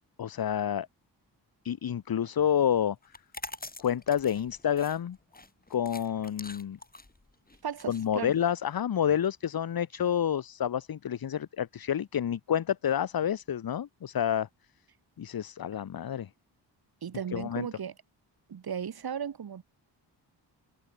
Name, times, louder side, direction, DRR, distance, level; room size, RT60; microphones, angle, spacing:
voice 1, 0.2-0.9 1.6-3.0 3.8-5.2 5.7-6.8 7.9-14.5 15.2-16.3 17.3-17.7, left 9 dB, 55° left, 1.1 m, -29 dB
sound 1, 3.0-8.8, left 2 dB, 20° left, 6.8 m, -45 dB
voice 2, 7.6-8.4 17.0-17.9 18.5-19.6, right 7 dB, 55° right, 2.0 m, -36 dB
cardioid pair, 70°, 44 cm